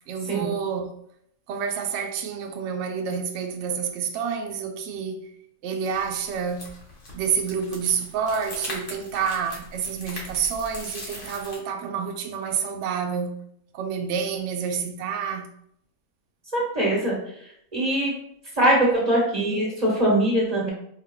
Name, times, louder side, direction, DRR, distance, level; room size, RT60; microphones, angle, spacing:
voice 1, 0.1-1.0 1.5-5.3 5.6-6.8 7.1-13.4 13.7-15.5, right 6 dB, 65° right, 0.7 m, -28 dB
sound 1, 5.9-11.6, left 1 dB, 40° left, 1.2 m, -40 dB
voice 2, 16.5-18.1 18.5-20.7, right 1 dB, 25° right, 1.4 m, -22 dB
4.6 x 3.5 x 2.2 m
omnidirectional pair, 1.6 m